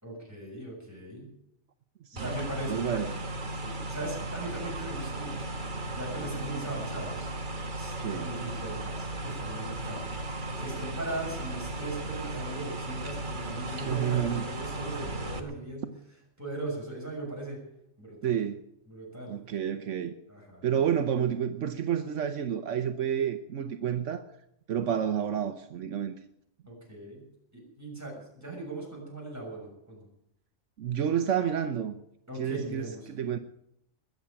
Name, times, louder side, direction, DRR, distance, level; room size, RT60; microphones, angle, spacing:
voice 1, 0.0-1.3 2.1-3.0 3.5-5.6 5.9-7.3 7.7-10.2 10.6-15.9 16.4-17.6 18.0-18.4 18.9-19.3 20.3-20.7 26.6-27.2 27.5-30.1 32.3-33.1, right 1 dB, 15° right, 6.7 m, -39 dB
voice 2, 2.1-2.4 2.7-3.1 8.0-8.3 13.8-14.5 18.2-18.6 19.3-20.1 20.6-24.3 24.7-26.2 30.8-32.0 32.4-33.4, right 9 dB, 75° right, 1.1 m, -30 dB
sound 1, 2.2-15.4, right 2 dB, 40° right, 1.5 m, -36 dB
21.0 x 7.5 x 8.7 m
omnidirectional pair, 1.3 m